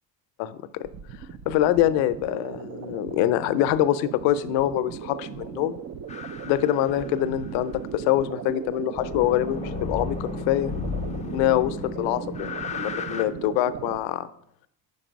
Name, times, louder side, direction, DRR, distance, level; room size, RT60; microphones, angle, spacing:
sound 1, 0.8-14.0, right 7 dB, 35° right, 0.5 m, -37 dB
voice 1, 1.5-5.8 6.4-10.7 11.3-12.5 12.8-14.3, left 13 dB, 65° left, 14 dB, 0.6 m, -24 dB
sound 2, 6.1-7.5 9.0-13.2, left 5 dB, 15° left, 0.5 m, -34 dB
5.4 x 5.3 x 5.1 m, 0.72 s
supercardioid pair, 80°, 48 cm